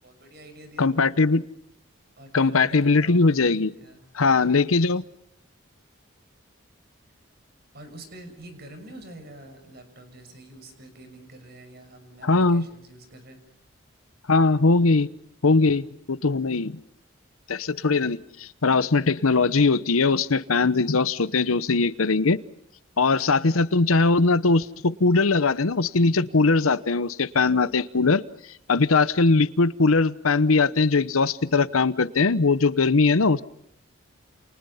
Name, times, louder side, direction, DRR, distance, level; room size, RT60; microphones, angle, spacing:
voice 1, 0.0-1.1 2.2-4.1 4.8-4.9 7.7-13.4 23.0-23.4, right 1 dB, 50° right, 8 dB, 6.3 m, -46 dB
voice 2, 0.8-1.4 2.3-3.7 4.1-5.0 12.2-12.6 14.3-15.1 15.4-16.8 17.5-22.4 23.0-28.2 28.7-33.4, left 3 dB, 90° left, 15 dB, 0.9 m, -20 dB
29.5 x 29.0 x 5.7 m, 0.75 s
head